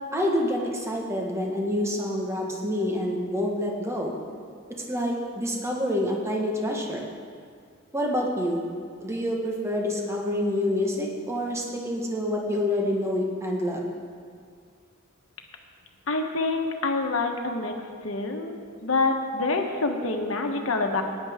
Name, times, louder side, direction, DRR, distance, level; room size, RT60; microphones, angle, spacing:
voice 1, 0.1-4.2 4.9-7.1 7.9-8.7 9.0-13.9, left 1 dB, 15° right, -1 dB, 1.3 m, -27 dB
voice 2, 16.1-17.7 18.0-21.0, left 3 dB, 75° left, 3 dB, 1.2 m, -26 dB
16.5 x 10.0 x 3.6 m, 2.1 s
head